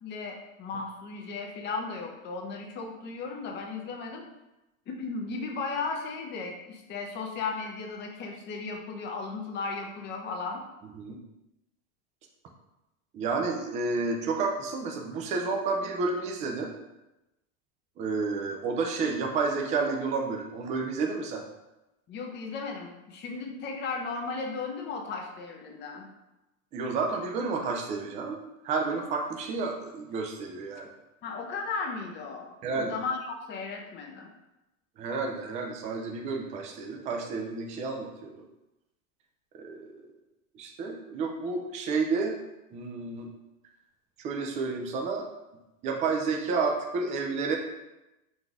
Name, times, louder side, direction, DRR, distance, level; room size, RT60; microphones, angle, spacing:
voice 1, 0.0-4.2 4.9-10.6 22.1-26.1 31.2-34.3, left 4 dB, 25° left, 1 dB, 0.7 m, -35 dB
voice 2, 13.1-16.7 18.0-21.4 26.7-28.4 28.6-30.9 32.6-32.9 35.0-38.3 39.5-40.0 40.5-42.4 42.7-43.3 44.2-45.3 45.8-47.6, right 4 dB, 20° right, 2 dB, 0.3 m, -30 dB
3.9 x 2.6 x 4.6 m, 0.97 s
supercardioid pair, 140°, 41 cm